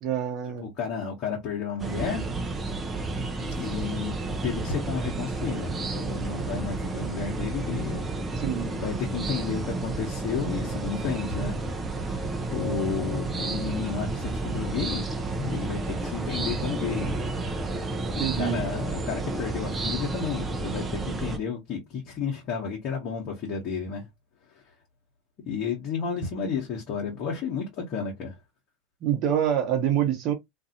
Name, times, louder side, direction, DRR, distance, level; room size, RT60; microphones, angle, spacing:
voice 1, 0.0-0.7 8.4-8.7 18.2-18.6 29.0-30.3, right 10 dB, 50° right, 1.0 m, -26 dB
voice 2, 0.6-2.2 3.4-4.1 4.4-8.1 8.7-11.6 12.0-15.0 15.4-17.1 17.5-17.8 18.4-24.1 25.5-28.3, left 6 dB, 50° left, 1.0 m, -32 dB
sound 1, 1.8-21.4, right 3 dB, 20° right, 0.7 m, -31 dB
2.6 x 2.5 x 2.7 m
hypercardioid pair, 80°, 0 cm